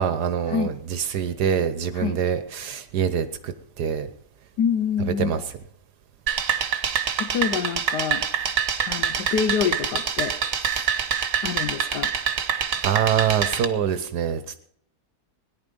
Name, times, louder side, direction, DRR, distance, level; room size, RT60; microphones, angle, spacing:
voice 1, 0.0-4.1 5.1-5.4 12.8-14.6, right 8 dB, 70° right, 11 dB, 1.3 m, -25 dB
voice 2, 4.6-5.4 7.2-8.3 8.9-10.3 11.4-12.1, left 7 dB, 75° left, 8 dB, 1.4 m, -26 dB
sound 1, 6.3-13.6, right 7 dB, 55° right, 1.4 m, -26 dB
17.5 x 10.5 x 5.3 m, 0.65 s
omnidirectional pair, 1.8 m